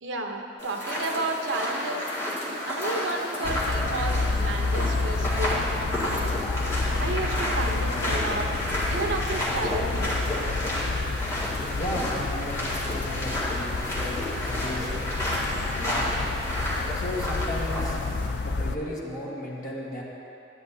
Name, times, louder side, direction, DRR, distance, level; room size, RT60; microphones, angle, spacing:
voice 1, 0.0-2.1 2.7-6.4 6.9-8.5 8.9-10.3, right 2 dB, 85° right, 2 dB, 0.9 m, -32 dB
sound 1, 0.6-18.3, left 1 dB, 15° left, 2.1 m, -31 dB
sound 2, 3.4-18.8, left 3 dB, 65° left, 0.4 m, -30 dB
voice 2, 11.7-12.6 12.9-15.2 15.7-16.0 16.9-18.0 18.4-20.0, left 1 dB, 45° left, -4 dB, 1.4 m, -35 dB
12.0 x 11.0 x 2.8 m, 2.7 s
head